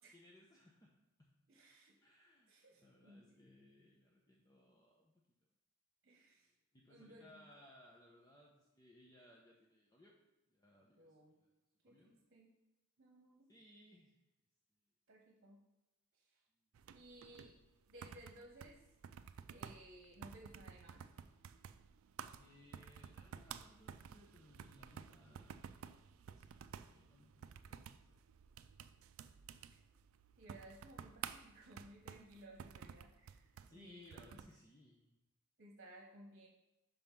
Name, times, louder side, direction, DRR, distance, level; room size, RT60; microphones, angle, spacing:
voice 1, 0.1-0.9 1.2-1.3 2.0-5.1 6.7-10.1 10.5-11.5 11.8-12.1 13.5-14.2 22.3-25.7 26.1-28.4 33.7-35.2, left 1 dB, 20° left, -2 dB, 0.8 m, -64 dB
voice 2, 1.5-2.0 2.5-3.5 6.0-6.5 6.9-7.4 11.0-11.3 11.8-12.5 13.0-13.5 15.1-15.6 16.9-17.6 17.9-18.8 19.5-21.0 30.4-34.4 35.6-36.5, right 1 dB, 55° right, 0 dB, 1.1 m, -59 dB
sound 1, 16.7-34.6, right 7 dB, 85° right, 0.4 m, -53 dB
5.4 x 5.3 x 5.9 m, 0.97 s
head